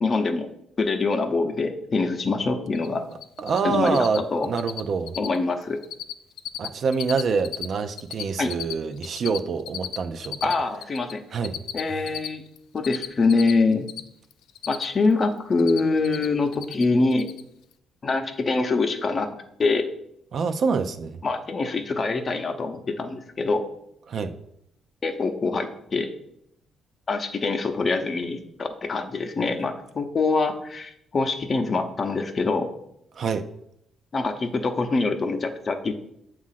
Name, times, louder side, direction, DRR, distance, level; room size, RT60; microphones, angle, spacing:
voice 1, 0.0-0.5 0.8-3.0 3.6-4.5 5.2-5.8 8.4-8.5 10.4-11.2 11.7-12.4 12.7-13.9 14.7-17.3 18.0-19.3 19.6-19.9 21.2-23.7 25.0-26.1 27.1-32.7 34.1-35.9, left 3 dB, 40° left, 7 dB, 0.6 m, -24 dB
Cricket, 2.7-2.9 3.1-3.6 3.9-4.2 4.4-4.8 5.1-5.4 5.6-6.1 6.4-7.7 7.9-11.1 11.4-14.0 14.3-15.1 15.4-16.3 16.5-16.8 17.1-17.4, left 11 dB, 85° left, 0.3 m, -34 dB
voice 2, 3.4-5.1 6.6-10.5 11.3-11.6 11.9-12.0 20.3-21.2 24.1-24.3 33.2-33.4, right 5 dB, 55° right, 7 dB, 0.4 m, -26 dB
7.2 x 2.4 x 5.6 m, 0.76 s
cardioid pair, 90°, 0 cm